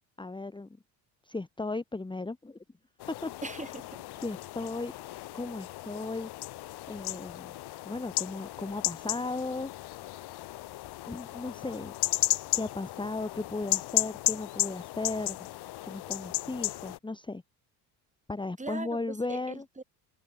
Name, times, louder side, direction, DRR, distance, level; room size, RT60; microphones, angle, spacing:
voice 1, 0.2-0.8 1.2-2.6 3.2-3.6 4.2-4.9 5.3-6.3 6.9-7.5 7.8-10.0 11.1-11.9 12.5-15.5 15.8-17.4 18.3-19.7, left 3 dB, 10° left, 1.5 m, -36 dB
sound 1, 3.0-17.0, left 17 dB, 55° left, 0.9 m, -34 dB
voice 2, 3.4-4.2 18.6-19.8, right 3 dB, 15° right, 3.2 m, -41 dB
open air
supercardioid pair, 80°, 47 cm